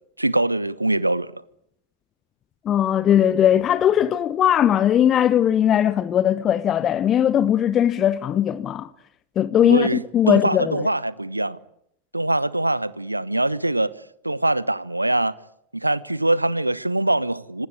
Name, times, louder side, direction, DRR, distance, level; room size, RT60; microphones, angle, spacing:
voice 1, 0.2-1.3 9.6-11.6 12.1-13.9 14.2-15.3 15.7-17.7, right 1 dB, 85° right, 1.0 m, -23 dB
voice 2, 2.6-8.9 9.4-10.8, left 10 dB, 30° left, 1.0 m, -19 dB
26.0 x 19.5 x 9.8 m
figure-of-eight pair, 90°, 0 cm